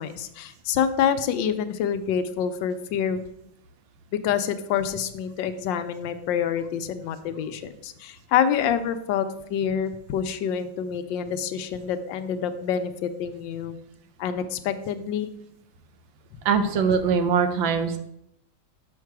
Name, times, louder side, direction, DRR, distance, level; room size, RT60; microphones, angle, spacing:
voice 1, 0.0-3.2 4.1-13.8 14.2-15.3 16.3-16.4, left 8 dB, 75° left, 9 dB, 1.2 m, -27 dB
voice 2, 16.4-18.0, right 6 dB, 80° right, 9 dB, 1.5 m, -22 dB
6.5 x 5.3 x 4.6 m, 0.79 s
omnidirectional pair, 2.1 m